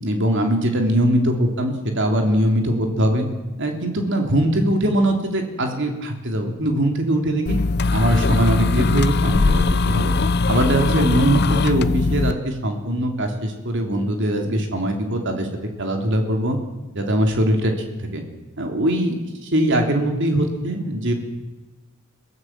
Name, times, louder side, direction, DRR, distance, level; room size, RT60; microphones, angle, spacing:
voice 1, 0.0-3.3 3.6-7.6 7.9-10.2 10.5-15.5 15.8-16.6 16.9-17.7 18.1-18.2 18.6-19.2 19.4-21.1, right 1 dB, 55° right, 4 dB, 3.2 m, -21 dB
sound 1, 7.5-12.3, left 3 dB, 50° left, 0.7 m, -20 dB
23.5 x 16.0 x 7.4 m, 1.2 s
head